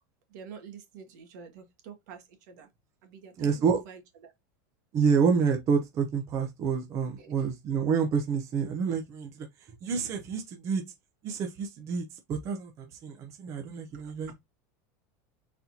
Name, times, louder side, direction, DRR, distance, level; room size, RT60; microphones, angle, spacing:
voice 1, 0.3-2.7 3.0-4.3 7.2-7.3 13.9-14.1, right 6 dB, 75° right, 1.8 m, -48 dB
voice 2, 3.4-3.8 4.9-9.3 9.8-10.8 11.2-12.0 12.3-12.7 13.0-14.3, right 6 dB, 30° right, 0.8 m, -28 dB
4.2 x 4.1 x 2.9 m
supercardioid pair, 160°, 10 cm